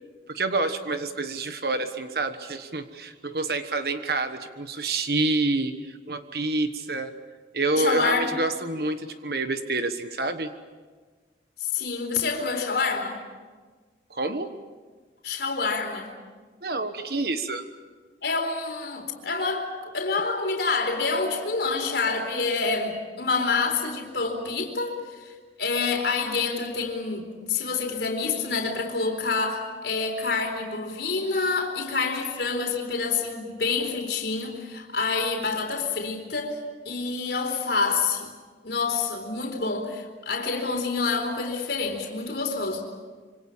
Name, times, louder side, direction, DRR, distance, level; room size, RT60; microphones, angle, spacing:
voice 1, 0.3-7.1 7.5-10.5 14.1-14.5 16.6-17.7, right 2 dB, 60° right, 8 dB, 1.3 m, -28 dB
voice 2, 7.8-8.3 11.6-13.2 15.2-16.1 18.2-36.6 36.8-38.3 38.6-42.8, left 4 dB, 75° left, 2 dB, 4.0 m, -27 dB
26.5 x 25.0 x 7.4 m, 1.4 s
head